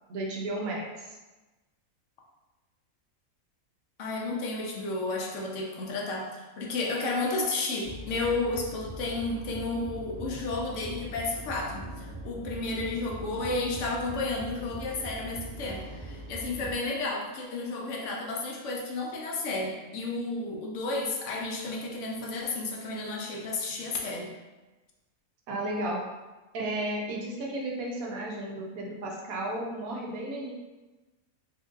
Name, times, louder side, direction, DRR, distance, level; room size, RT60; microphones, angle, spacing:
voice 1, 0.1-1.1 25.5-26.0 26.5-30.5, right 1 dB, 75° right, -1 dB, 1.1 m, -33 dB
voice 2, 4.0-24.3, left 2 dB, 65° left, -1 dB, 0.8 m, -32 dB
sound 1, 7.8-16.7, right 1 dB, 45° right, 1.1 m, -41 dB
4.2 x 2.6 x 2.5 m, 1.2 s
omnidirectional pair, 1.5 m